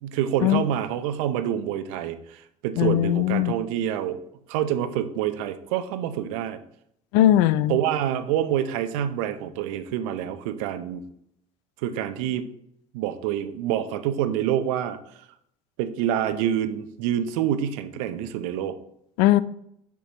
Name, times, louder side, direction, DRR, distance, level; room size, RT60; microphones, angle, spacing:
voice 1, 0.0-4.2 4.5-6.6 7.7-11.0 11.8-12.5 12.9-15.2 15.8-18.8, right 10 dB, 65° right, 11 dB, 0.7 m, -27 dB
voice 2, 2.8-3.5 7.1-7.8 19.2-19.4, left 13 dB, 60° left, 16 dB, 0.4 m, -19 dB
6.9 x 6.1 x 2.9 m, 0.72 s
hypercardioid pair, 70°, 18 cm